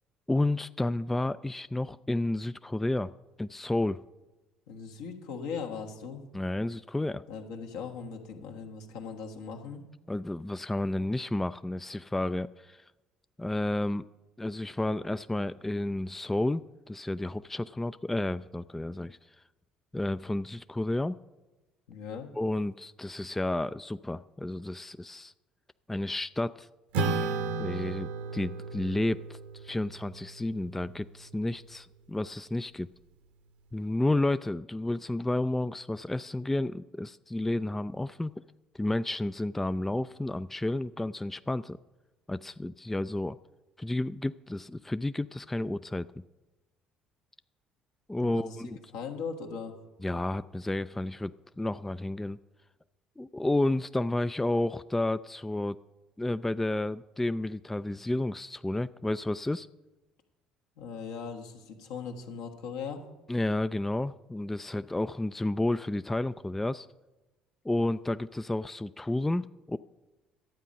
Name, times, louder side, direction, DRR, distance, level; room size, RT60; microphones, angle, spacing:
voice 1, 0.3-3.1 3.4-4.0 6.3-7.2 10.1-12.8 13.4-14.1 14.4-19.2 19.9-21.2 22.4-25.3 25.9-26.7 27.6-32.9 33.7-38.3 38.7-41.8 42.3-43.4 43.8-46.1 48.1-48.8 50.0-51.3 51.6-52.4 53.2-55.8 56.2-59.7 63.3-66.9 67.6-69.8, left 1 dB, 10° left, 14 dB, 0.3 m, -31 dB
voice 2, 4.7-6.2 7.3-9.8 21.9-22.3 48.2-49.7 60.8-63.0, left 6 dB, 70° left, 2 dB, 1.5 m, -39 dB
Acoustic guitar / Strum, 26.9-31.7, right 3 dB, 70° right, 1.0 m, -35 dB
12.5 x 9.0 x 5.3 m, 1.1 s
hypercardioid pair, 55°, 3 cm